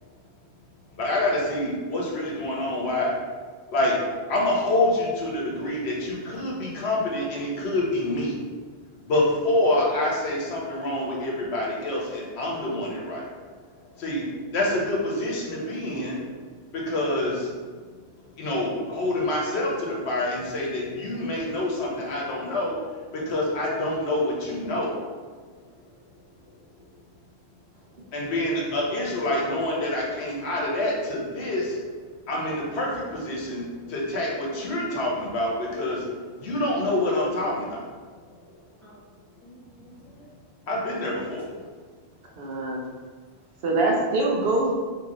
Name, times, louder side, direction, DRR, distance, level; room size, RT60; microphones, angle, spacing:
voice 1, 1.0-3.1 3.7-4.0 4.3-8.4 9.0-13.2 14.0-14.2 14.5-16.2 16.7-17.5 18.4-22.8 23.1-24.9 28.1-31.8 32.3-36.1 36.4-37.8 40.7-41.5, left 1 dB, 75° left, -3 dB, 1.1 m, -26 dB
voice 2, 32.9-33.4 35.9-36.0 36.3-36.5 38.0-38.3 38.8-39.0 39.4-40.3, right 1 dB, ahead, -9 dB, 0.9 m, -52 dB
voice 3, 42.4-42.9 43.6-44.7, right 2 dB, 70° right, -1 dB, 0.8 m, -23 dB
2.9 x 2.8 x 3.7 m, 1.5 s
omnidirectional pair, 1.1 m